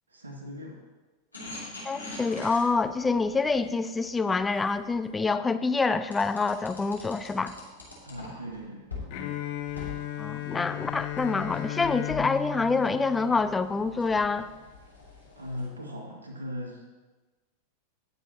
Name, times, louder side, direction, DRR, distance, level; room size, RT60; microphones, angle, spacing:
voice 1, 0.1-0.8 8.0-8.9 9.2-9.4 15.4-16.9, left 1 dB, 75° right, 1 dB, 2.0 m, -39 dB
sound 1, 1.3-5.2 6.1-8.6 8.9-9.1 9.6-15.7, left 3 dB, 80° left, 2.9 m, -45 dB
voice 2, 1.8-7.5 10.2-14.5, left 4 dB, 10° left, 11 dB, 0.5 m, -26 dB
Bowed string instrument, 9.1-14.0, left 13 dB, 45° left, 0.8 m, -36 dB
18.5 x 7.0 x 3.0 m, 1.3 s
figure-of-eight pair, 90°, 0 cm